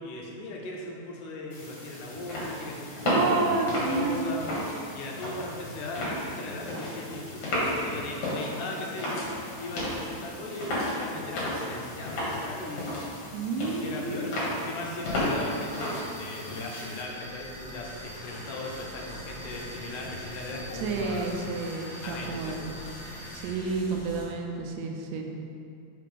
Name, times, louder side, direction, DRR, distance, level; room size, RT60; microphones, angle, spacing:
voice 1, 0.0-3.5 3.9-4.5 4.9-9.3 9.6-13.2 13.8-21.3 22.0-22.7, left 2 dB, 80° left, -1 dB, 2.2 m, -38 dB
sound 1, 1.5-17.0, left 1 dB, 60° left, 2.6 m, -33 dB
voice 2, 3.1-4.3 13.3-14.4 20.7-22.6 23.3-25.3, right 4 dB, 85° right, 2 dB, 2.2 m, -30 dB
sound 2, 15.0-23.4, equal, 60° right, 2.5 m, -46 dB
sound 3, 16.7-24.3, left 1 dB, 45° left, 2.0 m, -44 dB
5.6 x 3.4 x 5.2 m, 2.5 s
omnidirectional pair, 3.7 m